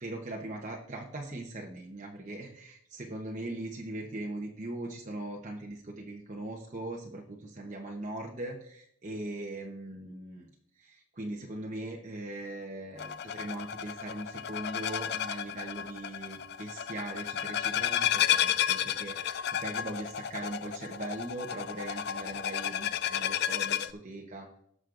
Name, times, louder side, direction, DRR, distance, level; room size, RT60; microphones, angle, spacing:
voice 1, 0.0-10.5 10.8-24.5, right 1 dB, 35° right, 0 dB, 0.9 m, -40 dB
sound 1, 13.0-23.9, left 10 dB, 50° left, 0.3 m, -32 dB
19.0 x 6.3 x 2.6 m, 0.71 s
head